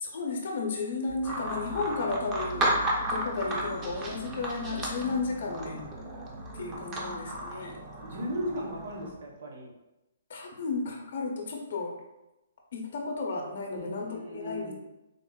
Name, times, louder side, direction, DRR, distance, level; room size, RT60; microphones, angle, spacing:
voice 1, 0.0-5.8 6.6-7.8 10.3-12.0 12.7-14.7, left 3 dB, 50° left, 1 dB, 0.5 m, -33 dB
sound 1, 1.1-6.8, right 1 dB, 80° right, 1.0 m, -44 dB
sound 2, 1.2-9.1, right 1 dB, 15° right, 0.3 m, -34 dB
voice 2, 7.9-9.7 13.7-14.7, equal, 60° right, 0 dB, 0.7 m, -36 dB
3.7 x 2.1 x 2.2 m, 0.96 s
hypercardioid pair, 170°, 0 cm